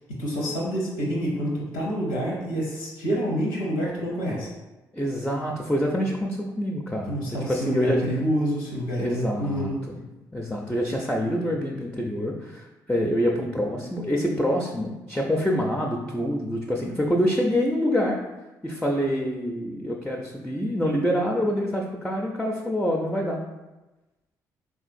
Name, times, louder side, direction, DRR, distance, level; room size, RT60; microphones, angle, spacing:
voice 1, 0.1-4.5 7.1-9.8, equal, 90° left, -3 dB, 0.8 m, -27 dB
voice 2, 4.9-7.2 7.5-8.0 9.0-10.0 10.3-18.2 18.6-23.4, equal, 5° left, 0 dB, 0.4 m, -26 dB
3.6 x 2.4 x 2.6 m, 1.1 s
hypercardioid pair, 45°, 10 cm